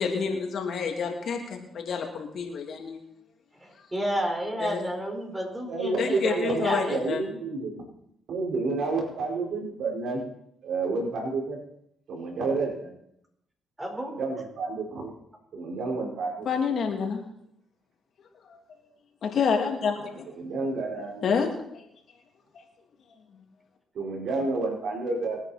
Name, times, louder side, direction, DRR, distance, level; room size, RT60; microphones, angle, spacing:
voice 1, 0.0-3.0 4.6-4.8 6.0-7.2 16.4-17.2 18.7-18.8 19.2-20.2 21.2-21.8, left 6 dB, 60° left, 2 dB, 3.0 m, -28 dB
voice 2, 3.6-7.4 13.8-14.2, right 1 dB, 15° right, 1 dB, 5.0 m, -31 dB
voice 3, 5.7-7.8 8.3-10.2 10.6-11.6 12.1-12.9 14.1-15.1 15.5-16.5 20.4-21.3 23.9-25.4, right 3 dB, 65° right, -1 dB, 5.0 m, -30 dB
25.0 x 9.6 x 4.4 m, 0.73 s
cardioid pair, 90°, 0 cm